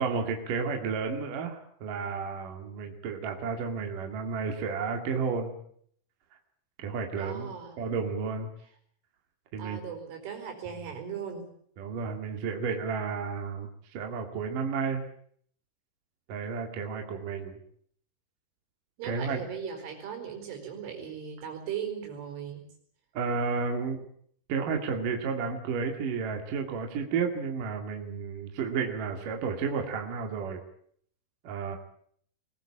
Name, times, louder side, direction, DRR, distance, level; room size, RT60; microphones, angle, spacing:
voice 1, 0.0-5.5 6.8-8.5 9.5-9.8 11.8-15.0 16.3-17.6 19.0-19.4 23.1-24.1 24.5-30.6 31.4-31.8, right 5 dB, 50° right, 3 dB, 3.3 m, -32 dB
voice 2, 7.2-7.8 9.6-11.5 19.0-22.6, right 7 dB, 90° right, 3 dB, 7.0 m, -38 dB
22.0 x 20.5 x 8.7 m, 0.64 s
omnidirectional pair, 5.4 m